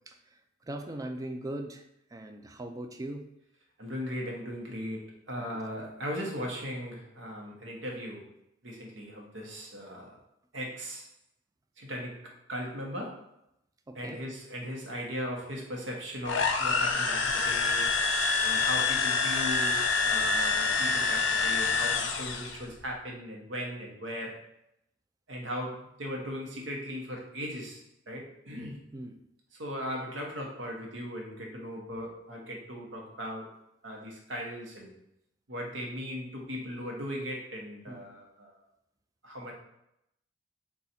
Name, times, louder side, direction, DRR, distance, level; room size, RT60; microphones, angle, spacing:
voice 1, 0.7-1.8 2.1-3.2 5.4-5.5 13.9-14.2 28.9-29.1 37.9-38.0, right 1 dB, 20° right, 5 dB, 0.3 m, -39 dB
voice 2, 3.8-8.3 8.6-10.2 10.5-11.1 11.8-13.3 13.9-18.0 18.4-24.4 25.3-28.8 29.5-33.6 33.8-34.9 35.5-38.6 39.2-39.5, equal, 70° right, 0 dB, 0.9 m, -38 dB
sound 1, 16.2-22.6, left 4 dB, 70° left, 0.5 m, -27 dB
3.9 x 2.4 x 4.1 m, 0.81 s
head